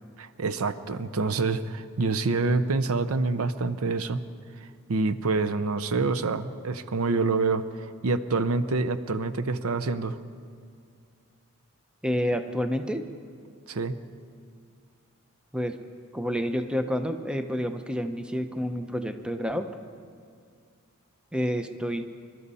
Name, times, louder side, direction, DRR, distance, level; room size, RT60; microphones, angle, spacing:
voice 1, 0.2-4.2 4.6-10.2 13.7-13.9, right 3 dB, 80° right, 10 dB, 0.7 m, -27 dB
voice 2, 12.0-13.1 15.5-15.8 16.1-19.7 21.3-22.0, equal, 5° right, 7 dB, 0.6 m, -29 dB
24.5 x 12.5 x 4.2 m, 2.2 s
head